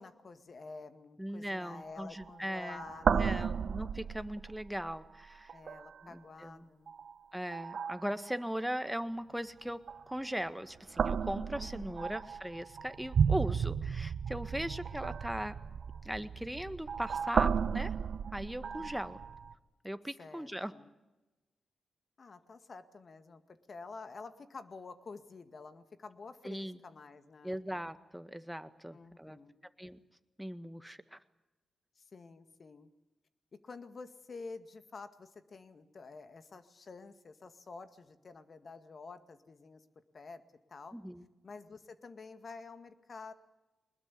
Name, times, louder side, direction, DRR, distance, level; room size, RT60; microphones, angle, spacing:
voice 1, 0.0-3.5 5.5-6.9 11.6-12.2 18.6-19.1 20.2-20.9 22.2-27.6 28.9-29.7 32.0-32.9 33.6-39.9 40.1-40.4 40.7-41.0 41.4-43.3, left 4 dB, 55° left, 10 dB, 2.0 m, -49 dB
voice 2, 1.2-5.5 6.0-6.7 7.3-15.6 16.0-17.9 18.3-19.2 19.8-20.7 26.4-26.8 27.4-29.4 29.8-30.0 30.4-31.2 40.9-41.2, equal, 5° right, 10 dB, 1.7 m, -39 dB
sound 1, 1.7-1.9 2.2-2.4 2.6-5.0 5.5-6.0 6.9-7.1 7.5-8.3 9.9-10.3 10.9-19.5, right 7 dB, 70° right, 0.8 m, -34 dB
22.5 x 20.5 x 8.5 m, 1.1 s
supercardioid pair, 40°, 0 cm